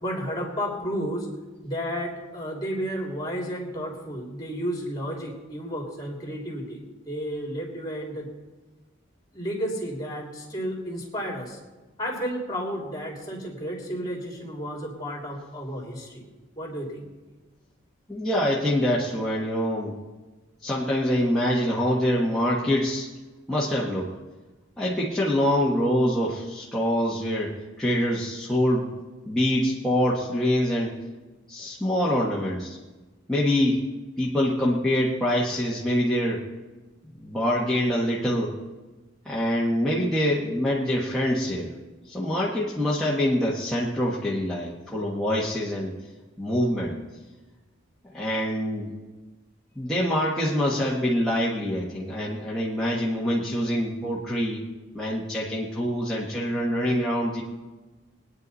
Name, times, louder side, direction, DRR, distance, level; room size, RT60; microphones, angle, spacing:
voice 1, 0.0-1.3 1.6-8.3 9.3-11.6 12.0-16.2 16.6-17.0, equal, 20° left, -1 dB, 2.9 m, -32 dB
voice 2, 18.1-19.9 20.6-23.1 23.5-24.1 24.8-28.9 29.2-30.9 31.5-32.8 33.3-33.8 34.2-36.5 37.2-38.6 39.2-41.7 42.1-45.9 46.4-47.0 48.1-48.9 49.7-54.6 54.9-57.4, equal, 5° left, -7 dB, 1.5 m, -25 dB
22.5 x 9.7 x 4.1 m, 1.2 s
head